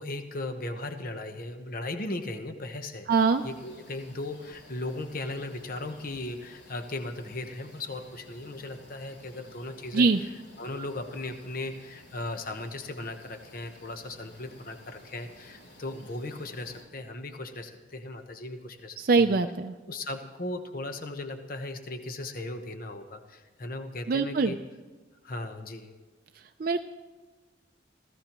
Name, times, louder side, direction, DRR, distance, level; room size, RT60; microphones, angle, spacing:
voice 1, 0.0-10.1 10.6-19.0 19.3-19.4 19.9-24.6 25.2-25.9, left 2 dB, 50° left, 7 dB, 1.0 m, -37 dB
sound 1, 3.1-16.9, left 1 dB, 70° left, 3.3 m, -53 dB
voice 2, 3.1-3.4 9.9-10.2 19.0-19.7 24.1-24.5 26.6-26.8, right 4 dB, 50° right, 6 dB, 0.4 m, -23 dB
27.5 x 15.0 x 3.0 m, 1.3 s
head